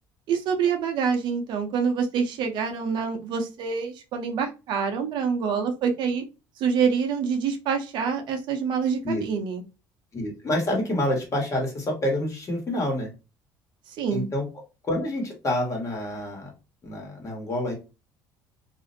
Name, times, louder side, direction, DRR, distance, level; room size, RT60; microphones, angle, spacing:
voice 1, 0.3-6.2 6.6-9.6 13.9-14.3, right 6 dB, 65° right, 4 dB, 0.6 m, -26 dB
voice 2, 10.1-13.1 14.1-14.4 14.8-16.5 16.8-17.7, left 1 dB, 35° left, 0 dB, 1.2 m, -27 dB
2.5 x 2.0 x 2.6 m, 0.29 s
supercardioid pair, 95°, 9 cm